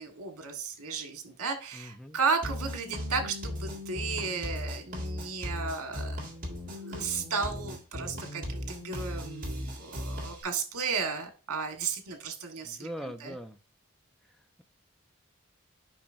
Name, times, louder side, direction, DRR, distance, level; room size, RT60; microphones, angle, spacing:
voice 1, 0.0-6.2 6.7-13.3, right 5 dB, 85° right, 5 dB, 1.5 m, -34 dB
voice 2, 1.7-2.2 12.6-13.6, equal, ahead, 5 dB, 0.3 m, -41 dB
sound 1, 2.4-10.4, left 1 dB, 35° right, 2.1 m, -37 dB
7.2 x 5.4 x 2.6 m, 0.34 s
head